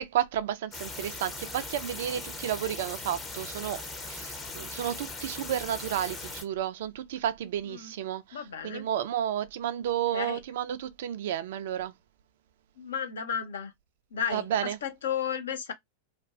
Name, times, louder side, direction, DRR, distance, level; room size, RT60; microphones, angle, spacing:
voice 1, 0.0-11.9 14.3-14.8, right 10 dB, 55° right, 0.3 m, -32 dB
sound 1, 0.7-6.4, left 3 dB, 20° left, 0.6 m, -39 dB
voice 2, 8.3-8.9 10.1-10.4 12.8-13.7 14.1-15.7, left 8 dB, 65° left, 0.5 m, -33 dB
2.5 x 2.2 x 2.3 m
figure-of-eight pair, 90°, 0 cm